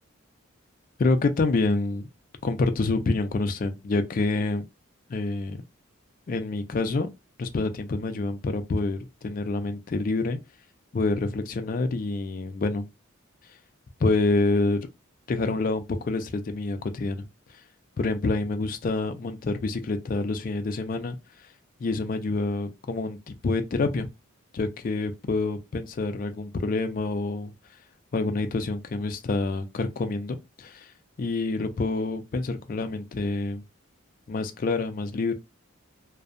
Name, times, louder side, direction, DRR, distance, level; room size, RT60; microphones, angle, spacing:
voice 1, 1.0-2.1 2.4-4.6 5.1-5.6 6.3-7.1 7.4-10.4 10.9-12.9 14.0-14.8 15.3-17.2 18.0-21.2 21.8-24.1 24.5-27.5 28.1-30.9 31.2-33.6 34.3-35.3, left 3 dB, 40° left, 0.3 m, -27 dB
2.6 x 2.1 x 2.4 m
head